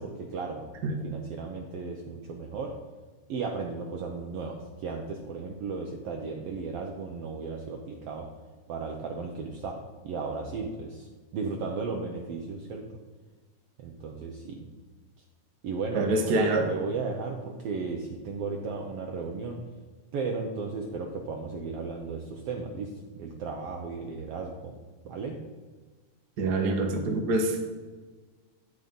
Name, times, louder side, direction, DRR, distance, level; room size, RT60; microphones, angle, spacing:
voice 1, 0.0-2.8 3.3-8.3 8.7-12.9 13.8-14.6 15.6-19.6 20.1-24.7 25.0-25.4, right 4 dB, 85° right, 2 dB, 1.3 m, -35 dB
voice 2, 15.9-16.7 26.4-27.6, right 2 dB, 60° right, 2 dB, 1.0 m, -26 dB
10.0 x 6.2 x 5.3 m, 1.4 s
omnidirectional pair, 3.8 m